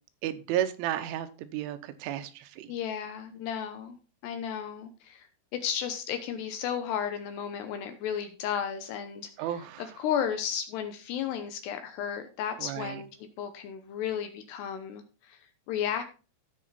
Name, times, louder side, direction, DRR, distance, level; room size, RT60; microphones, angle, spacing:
voice 1, 0.2-2.7 9.4-9.9 12.6-13.0, right 11 dB, 85° right, 10 dB, 3.3 m, -33 dB
voice 2, 2.7-5.3 5.5-9.5 9.8-16.0, left 8 dB, 75° left, 8 dB, 2.7 m, -34 dB
16.0 x 5.6 x 4.1 m, 0.34 s
omnidirectional pair, 5.6 m